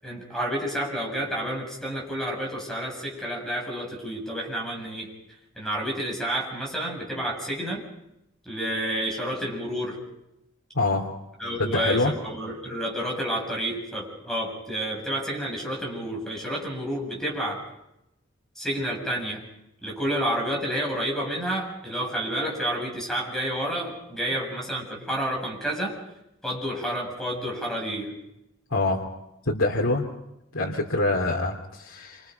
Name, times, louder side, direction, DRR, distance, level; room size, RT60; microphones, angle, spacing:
voice 1, 0.0-5.1 5.6-7.8 8.4-10.0 11.4-17.6 18.6-19.4 19.8-26.0 26.4-28.2, right 1 dB, ahead, -1 dB, 7.8 m, -30 dB
voice 2, 10.7-11.1 11.6-12.1 28.7-29.1 29.5-30.1 30.5-32.3, left 2 dB, 90° left, -1 dB, 2.9 m, -25 dB
28.0 x 26.5 x 5.4 m, 0.86 s
head